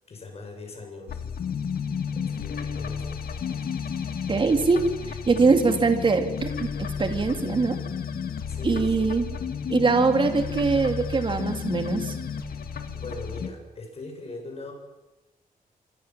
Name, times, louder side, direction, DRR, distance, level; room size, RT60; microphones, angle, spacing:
voice 1, 0.1-1.2 1.8-3.2 8.5-9.1 12.6-14.7, left 3 dB, 45° left, 3 dB, 7.2 m, -41 dB
sound 1, 1.1-13.5, left 6 dB, 85° left, 2.2 m, -32 dB
voice 2, 4.3-4.8 5.1-7.8 8.6-9.4 9.7-12.1, right 4 dB, 35° right, 7 dB, 2.7 m, -23 dB
26.0 x 23.5 x 7.5 m, 1.0 s
wide cardioid pair, 150°, 15 cm